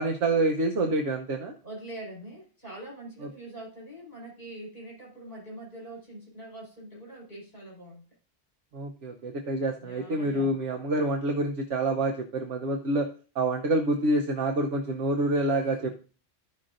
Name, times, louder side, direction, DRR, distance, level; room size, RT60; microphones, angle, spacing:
voice 1, 0.0-1.5 8.7-13.1 13.3-15.9, right 2 dB, 75° right, 3 dB, 1.2 m, -27 dB
voice 2, 1.6-8.0 9.8-10.5 15.8-15.9, right 1 dB, 50° left, -3 dB, 4.7 m, -43 dB
14.5 x 5.9 x 2.5 m, 0.37 s
omnidirectional pair, 1.2 m